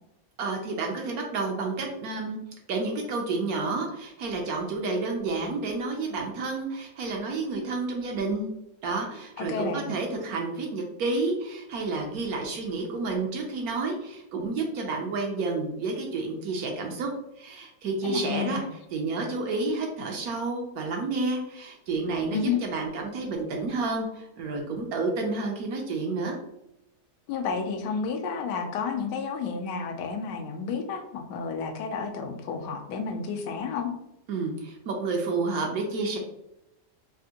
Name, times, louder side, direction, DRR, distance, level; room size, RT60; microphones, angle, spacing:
voice 1, 0.4-2.4 2.7-8.5 8.8-17.1 17.4-18.6 18.9-26.4 34.3-36.2, right 3 dB, 70° right, 1 dB, 0.9 m, -30 dB
voice 2, 9.4-9.9 18.0-18.6 22.3-22.6 27.3-33.9, left 5 dB, 80° left, 4 dB, 1.2 m, -31 dB
3.5 x 2.5 x 2.7 m, 0.87 s
omnidirectional pair, 1.8 m